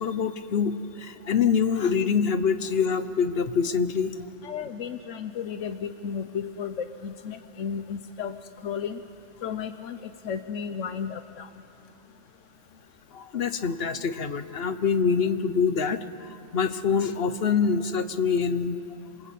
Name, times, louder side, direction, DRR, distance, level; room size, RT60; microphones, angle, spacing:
voice 1, 0.0-4.2 13.1-18.8, left 6 dB, 55° left, 11 dB, 1.2 m, -25 dB
voice 2, 4.4-8.3 8.6-9.0 9.4-11.5, left 7 dB, 85° left, 9 dB, 1.2 m, -33 dB
26.5 x 23.5 x 8.4 m, 2.8 s
omnidirectional pair, 1.2 m